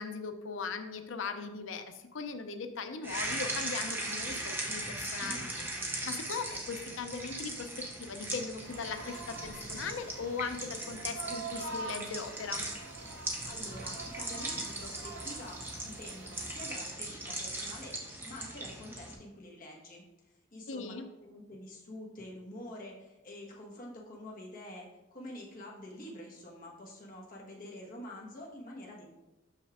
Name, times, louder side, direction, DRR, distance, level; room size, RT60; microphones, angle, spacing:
voice 1, 0.0-12.7 20.7-21.1, left 5 dB, 75° left, 8 dB, 0.6 m, -39 dB
sound 1, 3.0-19.1, right 1 dB, 10° right, 0.8 m, -39 dB
sound 2, 8.6-16.7, right 3 dB, 70° right, 0.8 m, -46 dB
voice 2, 13.4-18.0 18.2-20.0 20.5-29.1, left 1 dB, 45° left, -3 dB, 1.4 m, -47 dB
6.2 x 5.6 x 3.6 m, 1.0 s
head